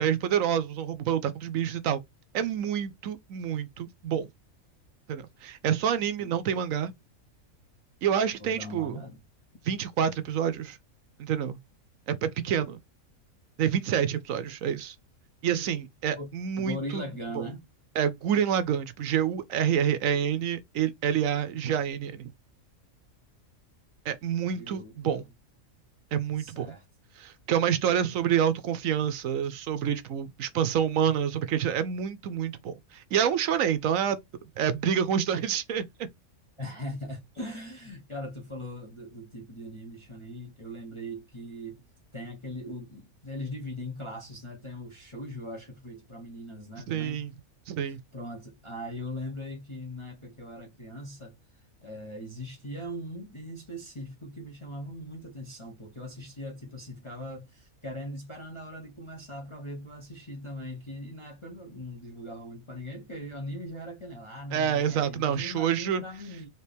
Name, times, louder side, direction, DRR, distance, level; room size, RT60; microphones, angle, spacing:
voice 1, 0.0-2.0 2.3-4.3 5.1-6.9 8.0-9.0 9.6-10.8 11.2-11.6 12.1-12.8 13.6-15.0 15.4-17.1 17.3-17.4 18.0-22.3 24.1-25.3 26.1-26.7 27.2-34.2 34.6-35.8 46.9-47.3 47.7-48.0 64.5-66.0, right 9 dB, 75° right, 1.0 m, -27 dB
voice 2, 8.4-9.2 16.1-17.6 24.5-25.1 26.4-26.8 36.6-41.8 42.1-47.2 47.8-51.3 51.8-66.5, equal, 25° left, 0.9 m, -40 dB
4.4 x 2.9 x 3.4 m
omnidirectional pair, 1.5 m